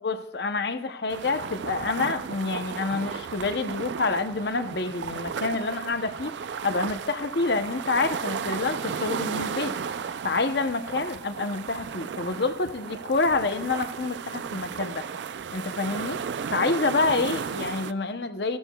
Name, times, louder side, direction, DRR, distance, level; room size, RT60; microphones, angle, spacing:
voice 1, 0.0-6.3 6.6-9.7 10.2-15.0 15.5-16.2 16.5-18.6, left 3 dB, 65° left, 9 dB, 0.7 m, -27 dB
sound 1, 1.1-17.9, right 6 dB, 75° right, 0.4 m, -34 dB
15.5 x 12.5 x 2.3 m, 0.92 s
head